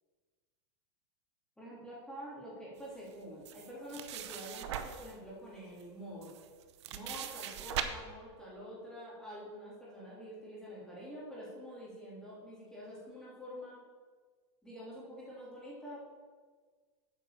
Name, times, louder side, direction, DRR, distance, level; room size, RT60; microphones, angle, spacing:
voice 1, 1.6-6.4 6.9-13.8 14.6-16.0, equal, 5° left, -8 dB, 3.3 m, -47 dB
sound 1, 3.4-5.1 5.8-5.9 6.2-7.8, right 11 dB, 70° right, 0.8 m, -40 dB
8.7 x 5.9 x 7.1 m, 1.5 s
supercardioid pair, 155°, 15 cm